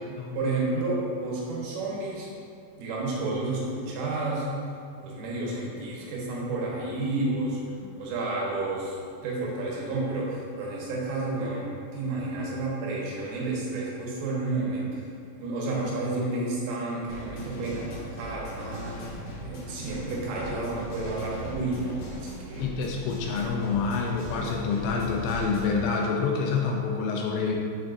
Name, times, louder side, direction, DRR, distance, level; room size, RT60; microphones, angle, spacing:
voice 1, 0.3-2.3 2.8-4.5 5.0-7.6 8.0-9.0 9.2-15.1 15.4-22.8, right 2 dB, 80° right, -4 dB, 3.9 m, -31 dB
sound 1, 17.1-25.8, equal, 65° left, 2.1 m, -40 dB
voice 2, 22.6-27.6, left 5 dB, 80° left, 0 dB, 2.8 m, -27 dB
8.1 x 7.4 x 2.6 m, 2.4 s
omnidirectional pair, 5.6 m